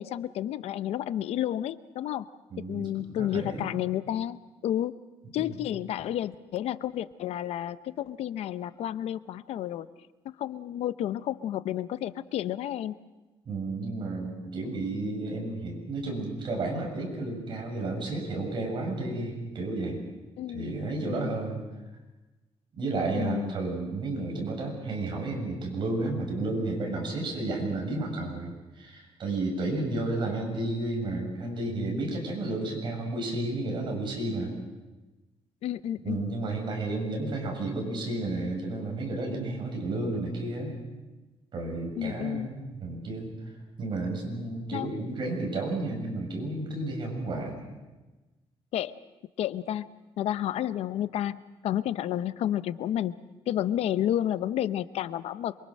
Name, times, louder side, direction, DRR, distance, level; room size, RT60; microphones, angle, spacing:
voice 1, 0.0-2.3 2.7-4.9 5.3-9.9 10.2-13.0 20.4-20.7 21.1-21.3 23.1-23.5 35.6-36.3 42.0-42.5 44.7-45.2 48.7-49.0 49.4-49.9 50.2-55.6, left 11 dB, 85° left, 14 dB, 0.8 m, -31 dB
voice 2, 2.5-2.9 3.2-3.6 5.4-5.5 13.5-20.0 20.5-21.6 22.7-34.5 36.0-40.8 41.5-43.3 43.8-47.6, right 2 dB, 50° right, 1 dB, 7.3 m, -32 dB
27.0 x 23.5 x 6.5 m, 1.1 s
cardioid pair, 155°, 10 cm